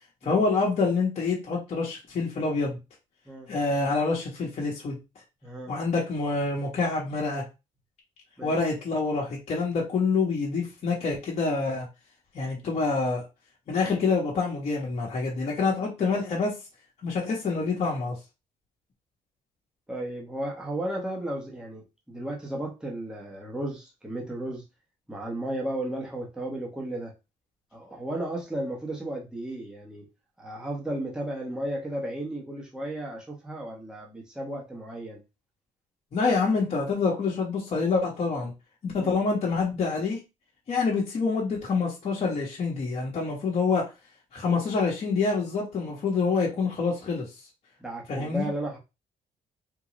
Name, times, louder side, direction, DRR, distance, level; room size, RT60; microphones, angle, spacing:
voice 1, 0.2-2.8 3.5-5.0 5.7-7.4 8.4-11.9 12.3-13.2 13.7-16.5 17.0-18.2 36.1-38.5 38.8-40.2 40.7-43.8 44.3-47.2 48.1-48.5, left 4 dB, 45° left, 1.1 m, -26 dB
voice 2, 5.4-5.7 8.4-8.5 19.9-24.6 25.1-27.1 27.7-30.0 30.4-35.2 39.0-39.2 47.8-48.8, right 1 dB, 5° right, 1.0 m, -34 dB
3.7 x 2.3 x 3.0 m
cardioid pair, 120°, 15 cm